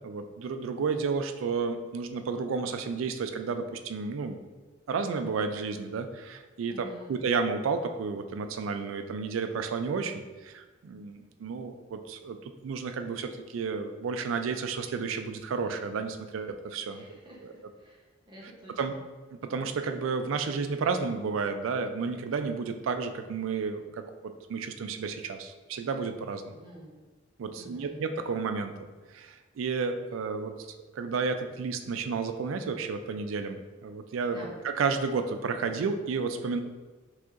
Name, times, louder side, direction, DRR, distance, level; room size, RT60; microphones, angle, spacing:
voice 1, 0.0-4.4 4.9-17.1 17.4-17.5 18.8-18.9 19.4-26.5 27.4-30.6 31.0-36.6, right 5 dB, 90° right, 8 dB, 0.4 m, -32 dB
voice 2, 6.7-7.2 16.9-19.0 26.5-26.9 27.6-28.0 34.3-34.6, equal, 25° right, -4 dB, 0.7 m, -49 dB
6.0 x 2.8 x 2.5 m, 1.3 s
head